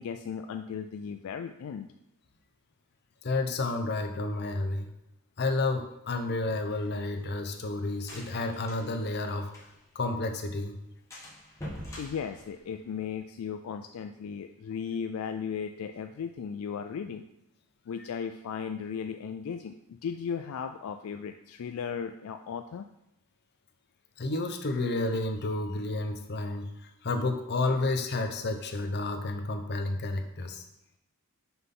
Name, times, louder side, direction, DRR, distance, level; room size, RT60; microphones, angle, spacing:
voice 1, 0.0-1.9 12.0-17.2 17.9-22.9, left 7 dB, 70° left, 7 dB, 0.3 m, -36 dB
voice 2, 3.2-4.9 5.4-9.5 9.9-10.8 24.2-30.6, left 2 dB, 50° left, 6 dB, 0.7 m, -31 dB
sound 1, 6.6-10.0 10.3-10.4 10.7-10.8 11.1-13.2, left 1 dB, 15° left, 1.5 m, -45 dB
5.9 x 5.6 x 3.8 m, 0.84 s
head